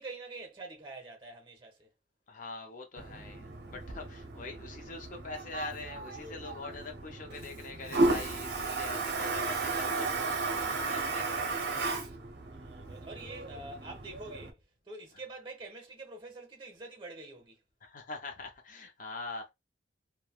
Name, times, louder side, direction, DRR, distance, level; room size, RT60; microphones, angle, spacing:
voice 1, 0.0-1.9 12.5-14.6 14.9-17.6, right 2 dB, 25° right, 0.8 m, -46 dB
voice 2, 2.3-12.0 17.8-19.5, left 3 dB, 45° left, 0.5 m, -43 dB
Toilet flush, 3.0-14.5, right 3 dB, 60° right, 0.6 m, -34 dB
3.2 x 2.2 x 2.3 m
head